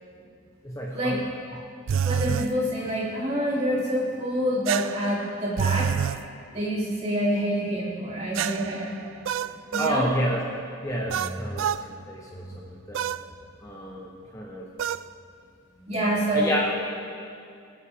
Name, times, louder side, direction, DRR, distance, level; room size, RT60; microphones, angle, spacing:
voice 1, 0.6-1.2 9.8-10.4 10.8-11.7 12.1-13.1 13.6-14.7 16.3-16.7, equal, 15° left, -2 dB, 0.9 m, -29 dB
sound 1, 1.9-2.5 4.7-6.2 8.3-10.0 11.1-11.8 12.9-13.2 14.8-15.1, right 8 dB, 70° right, 0.3 m, -28 dB
voice 2, 2.0-5.9 6.5-8.9 9.7-10.1 11.1-11.4 12.4-12.5 15.8-16.6, equal, 30° right, -7 dB, 3.2 m, -27 dB
22.5 x 8.7 x 3.6 m, 2.4 s
head